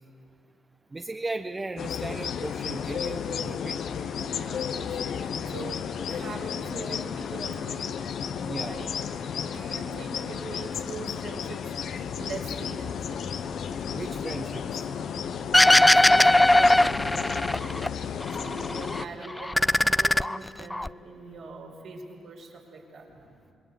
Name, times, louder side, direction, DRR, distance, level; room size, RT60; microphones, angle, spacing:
voice 1, 0.9-3.8 8.5-8.8 13.9-14.9, right 2 dB, 25° right, 6 dB, 1.0 m, -36 dB
sound 1, 1.8-19.0, left 7 dB, 70° left, 1.0 m, -33 dB
voice 2, 4.3-8.0 8.6-11.7 12.1-13.3 15.5-23.4, right 3 dB, 75° right, -1 dB, 5.2 m, -42 dB
sound 2, 15.5-17.9 18.2-19.0 19.4-20.9, left 1 dB, 15° left, 0.5 m, -19 dB
26.5 x 20.5 x 7.9 m, 2.5 s
supercardioid pair, 55°, 0 cm